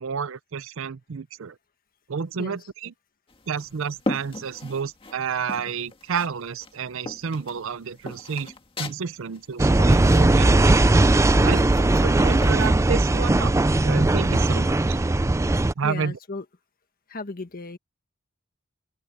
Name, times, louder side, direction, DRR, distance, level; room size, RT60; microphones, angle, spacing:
voice 1, 0.0-1.5 2.1-2.9 3.5-8.5 8.8-10.8 11.4-11.6 12.0-13.5 13.8-15.0 15.8-16.1, right 6 dB, 65° right, 0.5 m, -30 dB
sound 1, 3.3-5.2 5.5-6.3 6.6-12.7, left 1 dB, 25° left, 2.0 m, -36 dB
sound 2, 9.6-15.7, right 2 dB, 15° right, 0.4 m, -19 dB
voice 2, 11.3-11.7 12.0-12.5 15.8-16.4 17.1-17.8, left 3 dB, 45° left, 1.5 m, -36 dB
open air
head